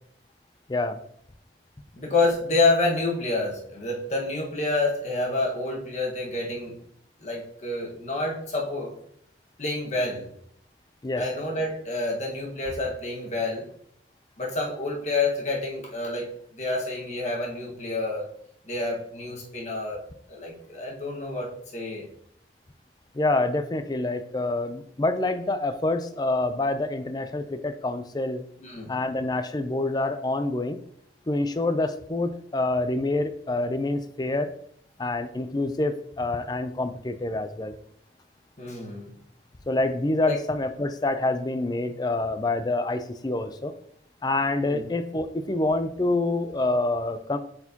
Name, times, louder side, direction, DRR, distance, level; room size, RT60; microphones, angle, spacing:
voice 1, 0.7-1.0 11.0-11.2 23.1-28.4 28.9-30.8 31.3-34.5 35.0-37.7 39.7-43.7 44.2-47.4, left 2 dB, 25° left, 10 dB, 0.4 m, -27 dB
voice 2, 1.9-6.8 7.2-8.9 9.6-10.3 11.1-13.7 14.4-18.3 18.6-20.0 20.3-22.1 28.6-29.0 38.6-39.1 40.3-40.4 44.7-44.8, left 2 dB, 40° left, -2 dB, 1.5 m, -28 dB
8.0 x 4.5 x 2.9 m, 0.68 s
head